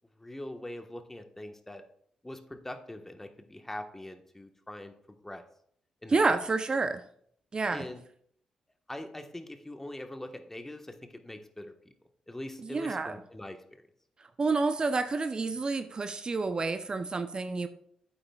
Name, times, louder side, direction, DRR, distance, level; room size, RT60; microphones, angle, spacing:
voice 1, 0.2-1.8 2.2-4.9 5.2-5.4 6.0-6.2 7.7-8.0 8.9-11.9 12.3-13.8, left 1 dB, 15° left, 6 dB, 1.3 m, -42 dB
voice 2, 6.1-7.0 7.5-7.9 12.6-13.2 14.4-17.7, right 3 dB, 40° right, 9 dB, 0.7 m, -29 dB
12.0 x 8.7 x 2.4 m, 0.66 s
hypercardioid pair, 40°, 2 cm